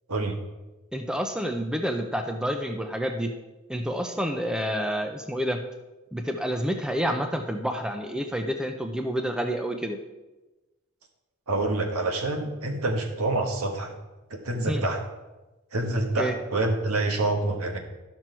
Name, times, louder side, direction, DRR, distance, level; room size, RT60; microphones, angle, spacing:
voice 1, 0.9-3.3 3.7-5.6 6.1-10.0 14.7-14.8 16.2-16.3, equal, 5° right, 5 dB, 0.5 m, -28 dB
voice 2, 11.5-14.0 14.3-15.0 15.7-17.8, right 2 dB, 85° right, 3 dB, 1.4 m, -27 dB
12.5 x 6.1 x 4.5 m, 1.1 s
head